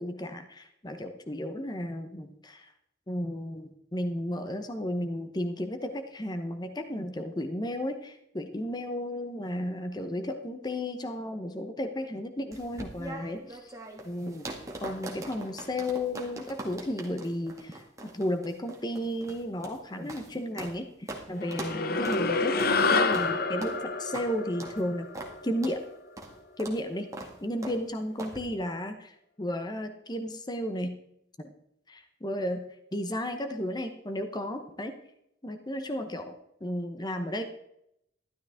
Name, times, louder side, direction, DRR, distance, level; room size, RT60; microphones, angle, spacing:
voice 1, 0.0-2.7 3.1-13.7 14.0-14.5 14.8-17.8 18.1-22.5 22.9-25.1 25.4-25.8 26.6-27.1 27.4-31.0 31.4-31.5 31.9-32.6 32.9-34.9 35.4-37.4, left 1 dB, 20° left, 7 dB, 0.9 m, -33 dB
sound 1, 12.5-20.8 21.1-21.2 21.5-21.8 22.0-22.2 22.6-22.8 23.1-23.3 23.6-23.8 24.1-24.3 24.6-24.8 25.1-25.3 25.6-25.8 26.2-26.3 26.6-26.8 27.1-27.3 27.6-27.8 28.2-28.4, right 1 dB, 15° right, 1.9 m, -41 dB
sound 2, 21.4-26.1, left 3 dB, 50° left, 0.8 m, -28 dB
12.5 x 12.0 x 3.6 m, 0.78 s
head